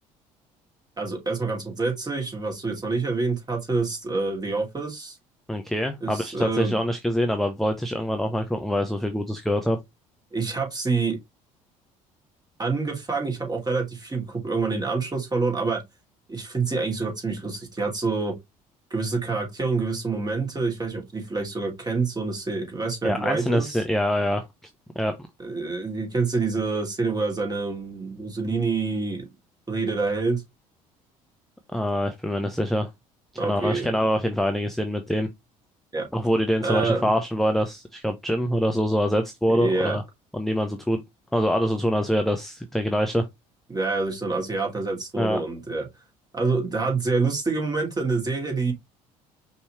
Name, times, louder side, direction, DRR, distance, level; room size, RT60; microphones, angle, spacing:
voice 1, 1.0-5.2 6.0-6.7 10.3-11.2 12.6-15.8 16.3-18.3 18.9-23.8 25.4-29.3 29.7-30.4 33.4-34.0 35.9-36.1 36.6-37.1 39.5-40.0 43.7-45.8 46.3-48.7, right 3 dB, 20° right, 2.7 m, -27 dB
voice 2, 5.5-9.8 23.0-24.4 25.0-25.2 31.7-32.9 33.3-35.3 36.1-40.0 40.3-41.0 41.3-43.2 45.2-45.4, equal, ahead, 0.7 m, -24 dB
5.3 x 3.2 x 3.0 m
hypercardioid pair, 60°, 18 cm